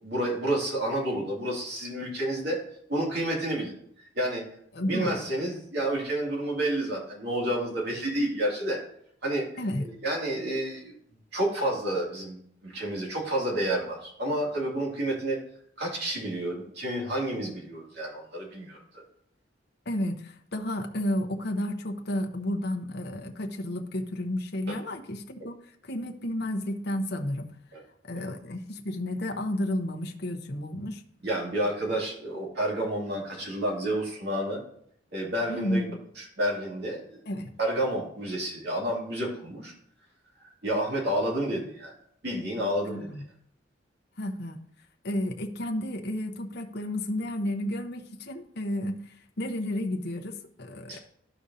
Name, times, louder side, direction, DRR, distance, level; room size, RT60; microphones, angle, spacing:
voice 1, 0.0-2.6 2.9-3.7 4.1-4.4 4.8-8.8 9.2-9.5 9.8-10.9 11.3-15.4 15.8-18.8 28.2-28.3 31.2-34.6 35.1-35.8 36.2-37.2 37.6-39.7 40.4-41.9 42.2-43.1 50.9-51.0, right 1 dB, 60° right, -3 dB, 2.6 m, -30 dB
voice 2, 4.7-5.2 9.6-9.8 19.9-25.6 25.8-27.5 28.1-31.0 35.5-36.0 37.3-37.5 42.8-43.2 44.2-44.6 45.0-51.0, left 1 dB, 60° left, 3 dB, 0.9 m, -32 dB
13.5 x 5.0 x 2.8 m, 0.67 s
head